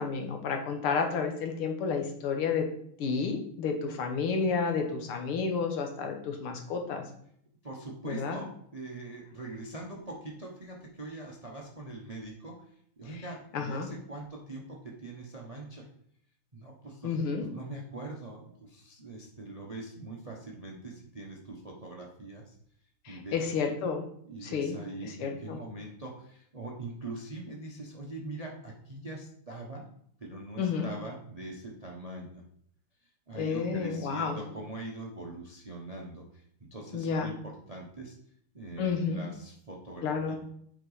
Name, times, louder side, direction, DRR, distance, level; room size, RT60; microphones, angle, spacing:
voice 1, 0.0-2.7 3.0-7.0 8.1-8.4 13.5-13.9 17.0-17.4 23.1-24.1 24.4-25.6 30.6-30.9 33.4-34.4 36.9-37.3 38.8-39.2 40.0-40.4, left 5 dB, 80° left, 4 dB, 2.0 m, -31 dB
voice 2, 7.6-12.6 13.0-15.8 16.5-22.5 23.1-23.5 24.2-29.8 30.2-32.4 33.3-36.4 36.7-38.1 38.5-40.3, right 2 dB, 30° right, 0 dB, 0.7 m, -42 dB
7.9 x 4.4 x 4.8 m, 0.66 s
omnidirectional pair, 2.4 m